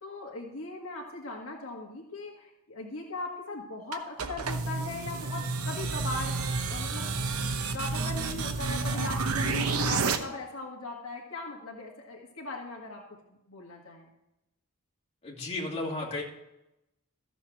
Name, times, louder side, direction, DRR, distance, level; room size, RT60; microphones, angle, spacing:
voice 1, 0.0-13.0 13.5-14.1, left 2 dB, 70° left, -1 dB, 1.8 m, -39 dB
sound 1, 3.9-10.2, right 4 dB, 85° right, 1.0 m, -30 dB
voice 2, 15.2-16.2, left 2 dB, 30° left, -4 dB, 2.8 m, -33 dB
14.0 x 7.1 x 4.7 m, 0.88 s
head